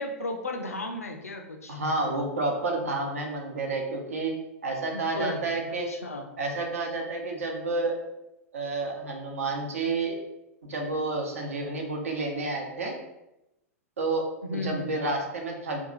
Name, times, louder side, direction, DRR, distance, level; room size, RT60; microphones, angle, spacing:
voice 1, 0.0-1.8 4.9-6.3 9.4-9.5 14.4-15.1, left 1 dB, 80° left, 3 dB, 0.5 m, -35 dB
voice 2, 1.7-4.3 4.6-5.9 6.4-8.0 8.5-10.1 10.7-12.9 14.0-14.3 14.5-15.8, right 2 dB, 70° right, 1 dB, 0.8 m, -30 dB
2.8 x 2.4 x 3.7 m, 0.91 s
figure-of-eight pair, 95°, 8 cm